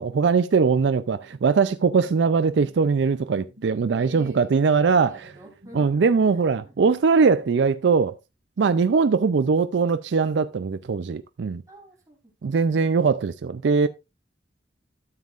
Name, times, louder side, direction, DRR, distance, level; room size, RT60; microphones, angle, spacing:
voice 1, 0.0-5.2 5.7-8.1 8.6-11.6 12.4-13.9, right 5 dB, 70° right, 0.4 m, -21 dB
sound 1, 0.8-7.5, right 1 dB, 55° right, 1.6 m, -52 dB
voice 2, 4.0-4.5 4.9-6.1 6.6-6.9 11.7-13.1, equal, 20° right, 3.1 m, -46 dB
13.0 x 7.3 x 2.4 m
head